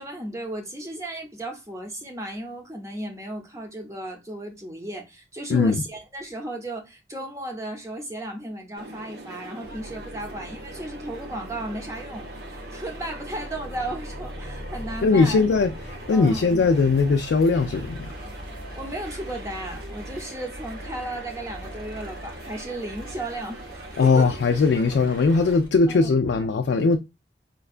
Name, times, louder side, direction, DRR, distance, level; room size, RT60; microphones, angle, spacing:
voice 1, 0.0-15.4 16.1-16.5 18.8-24.3 25.9-26.5, right 1 dB, 15° right, 0.7 m, -35 dB
voice 2, 5.5-5.8 15.0-18.1 24.0-27.0, left 4 dB, 80° left, 0.3 m, -20 dB
sound 1, 8.7-25.6, right 2 dB, 65° right, 0.7 m, -42 dB
sound 2, 9.6-25.7, left 1 dB, 25° left, 0.8 m, -41 dB
4.5 x 2.2 x 2.4 m
head